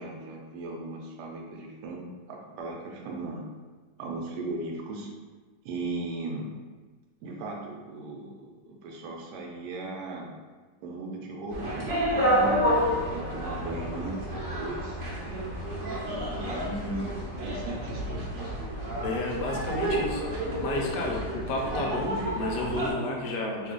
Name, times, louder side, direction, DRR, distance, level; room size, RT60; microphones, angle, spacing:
voice 1, 0.0-3.5 4.0-5.1 5.6-6.5 7.2-10.3 10.8-11.9 12.8-15.0 16.3-18.6, right 2 dB, 75° right, 0 dB, 1.1 m, -37 dB
sound 1, 11.5-22.9, equal, 55° right, 0.9 m, -30 dB
voice 2, 12.1-12.5 19.0-23.7, left 2 dB, 80° left, -1 dB, 1.2 m, -32 dB
3.1 x 2.3 x 3.6 m, 1.3 s
omnidirectional pair, 1.9 m